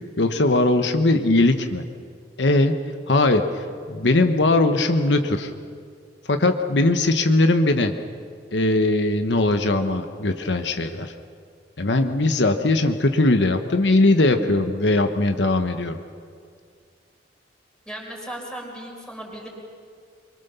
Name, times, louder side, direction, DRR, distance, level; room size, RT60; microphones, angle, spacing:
voice 1, 0.2-1.8 2.4-2.7 3.1-5.5 6.3-7.9 8.5-11.1 11.8-16.0, left 2 dB, 70° left, 7 dB, 1.1 m, -20 dB
voice 2, 17.9-19.5, right 1 dB, 5° left, 0 dB, 4.4 m, -36 dB
24.5 x 23.0 x 6.9 m, 2.2 s
head